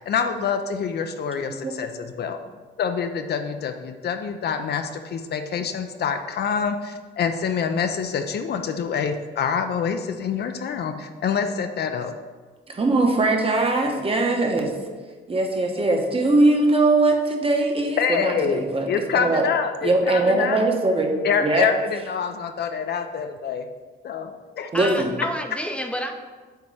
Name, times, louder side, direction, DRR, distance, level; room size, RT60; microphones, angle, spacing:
voice 1, 0.1-2.4 2.8-12.1 18.0-20.6 21.2-23.7 24.0-24.3 24.6-24.7, left 6 dB, 55° left, 7 dB, 0.5 m, -26 dB
voice 2, 12.7-14.7 15.3-18.9 19.1-19.5 19.8-21.7 24.7-25.1, right 2 dB, 30° right, 3 dB, 1.0 m, -21 dB
voice 3, 24.7-26.1, equal, 5° left, 4 dB, 0.6 m, -29 dB
8.1 x 2.9 x 4.8 m, 1.4 s
cardioid pair, 90°, 20 cm